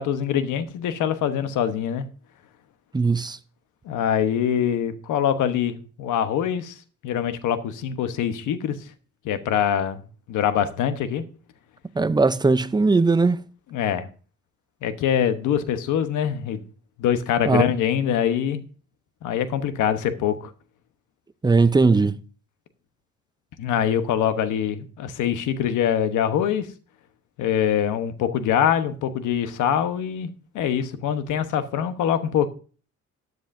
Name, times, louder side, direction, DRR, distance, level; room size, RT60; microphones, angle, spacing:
voice 1, 0.0-2.1 3.8-8.8 9.2-10.0 10.3-11.2 13.7-14.1 14.8-16.6 17.0-18.6 19.2-20.5 23.6-26.7 27.4-30.3 30.5-32.5, left 9 dB, 85° left, 1.1 m, -24 dB
voice 2, 2.9-3.4 12.0-13.4 17.5-17.6 21.4-22.2, right 3 dB, 15° right, 0.6 m, -19 dB
13.0 x 9.4 x 2.6 m
cardioid pair, 90°, 30 cm